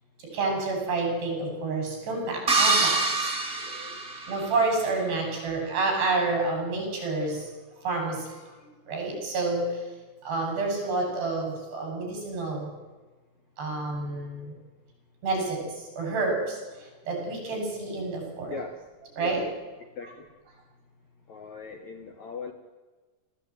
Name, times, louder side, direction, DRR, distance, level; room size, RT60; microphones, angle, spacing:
voice 1, 0.2-4.0 4.3-7.5 7.8-8.5 8.9-9.8 10.2-12.7 13.6-14.6 15.2-18.6 19.2-19.4 20.0-20.1, right 3 dB, 75° right, 1 dB, 9.3 m, -29 dB
sound 1, 2.5-4.7, right 3 dB, 40° right, 0.8 m, -25 dB
voice 2, 20.0-20.3 21.3-22.5, left 4 dB, 60° left, 5 dB, 2.0 m, -39 dB
21.0 x 16.0 x 9.1 m, 1.3 s
omnidirectional pair, 4.9 m